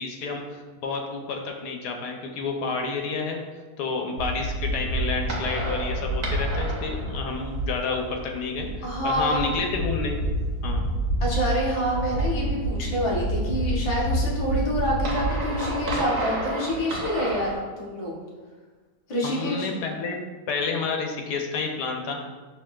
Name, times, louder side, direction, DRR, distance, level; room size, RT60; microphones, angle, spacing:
voice 1, 0.0-3.4 3.8-10.2 10.6-10.8 19.2-20.2 20.5-22.2, left 4 dB, 80° left, 3 dB, 1.1 m, -30 dB
sound 1, 4.2-17.6, right 1 dB, 75° right, 1.3 m, -28 dB
voice 2, 8.8-9.5 11.2-18.2 19.1-19.7, equal, 55° left, -3 dB, 0.3 m, -27 dB
5.7 x 2.6 x 2.3 m, 1.4 s
omnidirectional pair, 1.7 m